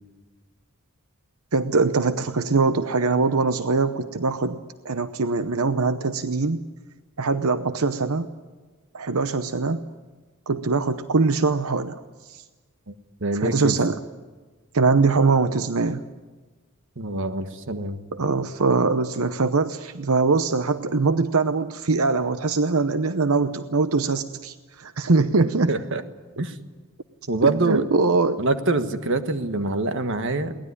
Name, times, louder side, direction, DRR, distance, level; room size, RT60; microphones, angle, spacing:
voice 1, 1.5-4.6 4.8-6.6 7.2-8.3 8.9-9.8 10.5-12.0 12.3-12.4 13.3-14.0 14.7-16.0 18.1-25.7 27.4-28.4, right 4 dB, 85° right, 11 dB, 0.8 m, -22 dB
voice 2, 13.2-13.8 17.0-18.0 25.7-26.0 26.4-26.5 27.3-27.8 28.4-30.5, right 2 dB, 60° right, 9 dB, 1.5 m, -25 dB
22.5 x 19.0 x 9.8 m, 1.3 s
head